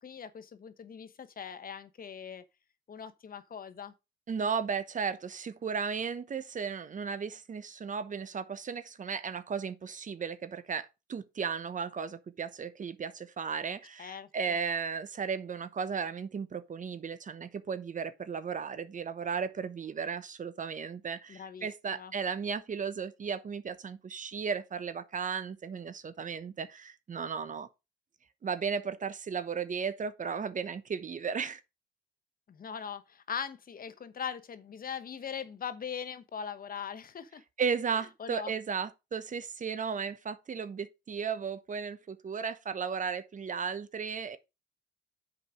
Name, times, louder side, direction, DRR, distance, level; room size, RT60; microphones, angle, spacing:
voice 1, 0.0-2.4 2.9-3.9 14.0-14.6 21.3-22.1 32.5-37.4 37.9-38.5, left 7 dB, 45° left, 1.1 m, -41 dB
voice 2, 4.3-27.7 28.4-31.6 37.6-44.4, right 6 dB, 40° right, 1.0 m, -35 dB
7.4 x 5.1 x 5.0 m
cardioid pair, 90°, 20 cm